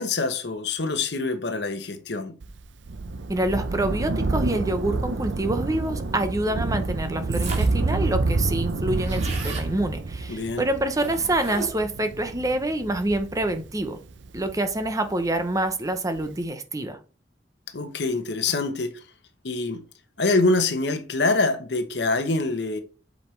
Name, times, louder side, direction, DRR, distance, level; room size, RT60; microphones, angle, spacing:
voice 1, 0.0-2.4 10.3-10.7 17.7-19.0 19.4-19.8 20.2-22.8, left 3 dB, 65° left, 0.9 m, -25 dB
Thunder, 2.4-15.3 16.2-16.3, right 3 dB, 90° right, 0.6 m, -28 dB
voice 2, 3.3-14.0 14.3-17.0, right 1 dB, 20° right, 0.7 m, -26 dB
sound 1, 7.3-7.9 8.3-8.4 8.5-9.7 10.9-11.9, right 4 dB, 40° right, 1.9 m, -36 dB
7.7 x 5.2 x 3.2 m
head